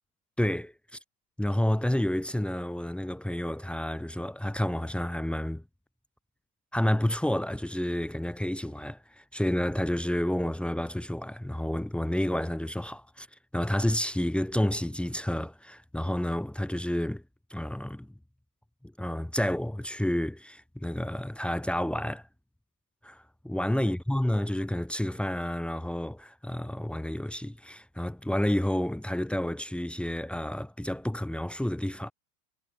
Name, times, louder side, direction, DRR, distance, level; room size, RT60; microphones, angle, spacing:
voice 1, 0.4-1.0 1.4-5.6 6.7-13.3 13.5-17.2 17.5-18.1 18.8-22.2 23.0-32.1, left 1 dB, ahead, 3.7 m, -30 dB
hypercardioid pair, 120°, 46 cm